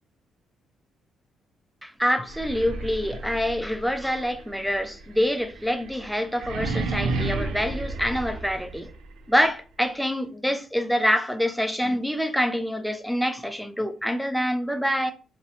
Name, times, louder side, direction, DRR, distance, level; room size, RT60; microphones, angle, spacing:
voice 1, 1.8-8.9 9.3-15.1, equal, ahead, 0.4 m, -26 dB
sound 1, 2.2-9.1, right 3 dB, 80° right, 0.3 m, -32 dB
2.7 x 2.0 x 2.6 m
cardioid pair, 90°, 0 cm